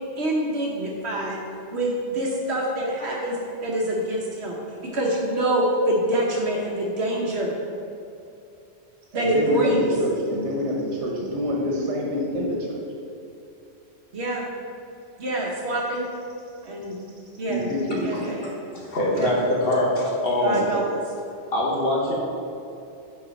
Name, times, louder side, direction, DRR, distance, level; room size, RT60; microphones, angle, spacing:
voice 1, 0.2-1.4 1.7-3.4 3.6-4.6 4.9-7.5 9.1-9.9 14.1-14.5 15.2-16.1 16.6-17.0 17.4-17.7 18.0-18.5 19.1-19.4 20.4-20.8, right 1 dB, 70° right, -2 dB, 1.2 m, -25 dB
voice 2, 9.1-12.8 17.5-18.2 20.5-20.7, equal, 85° right, -2 dB, 1.3 m, -26 dB
voice 3, 18.7-20.6 21.5-22.1, left 1 dB, 55° left, -3 dB, 1.5 m, -23 dB
5.9 x 4.9 x 5.2 m, 2.7 s
omnidirectional pair, 1.1 m